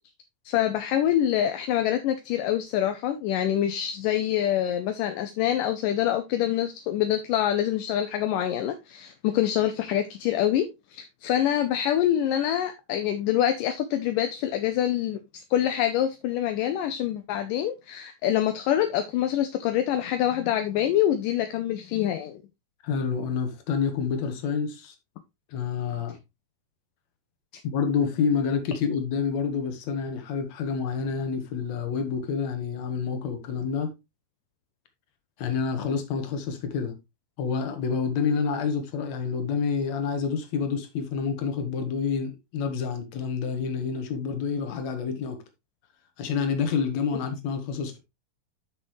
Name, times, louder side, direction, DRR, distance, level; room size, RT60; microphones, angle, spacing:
voice 1, 0.5-15.2 15.5-22.4, left 11 dB, 75° left, 2.1 m, -25 dB
voice 2, 22.8-25.0 25.5-26.2 27.6-33.9 35.4-37.0 37.4-45.4 46.2-48.0, left 6 dB, 55° left, 2.5 m, -28 dB
10.0 x 6.6 x 3.2 m
omnidirectional pair, 4.5 m